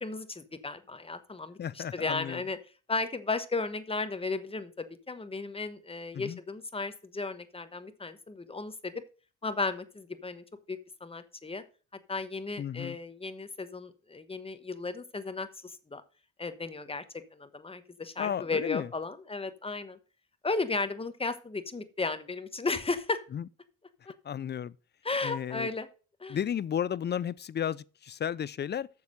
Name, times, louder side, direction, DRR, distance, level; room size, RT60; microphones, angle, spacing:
voice 1, 0.0-2.6 2.9-8.9 9.4-11.6 12.1-16.0 16.4-17.0 17.3-20.0 20.4-23.2 24.1-24.2 25.0-25.9 26.2-26.4, left 3 dB, 20° left, 1.2 m, -35 dB
voice 2, 1.6-2.4 6.1-6.4 12.6-13.0 18.2-18.9 23.3-23.4 24.2-24.7 25.2-25.7 26.3-28.9, left 9 dB, 35° left, 0.4 m, -33 dB
7.0 x 6.4 x 6.5 m
cardioid pair, 90°, 30 cm